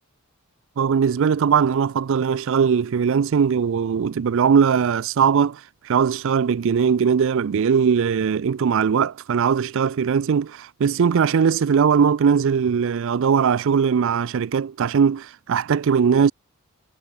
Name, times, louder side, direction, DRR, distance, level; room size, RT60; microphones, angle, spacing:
voice 1, 0.8-16.3, right 6 dB, 60° right, 0.4 m, -20 dB
head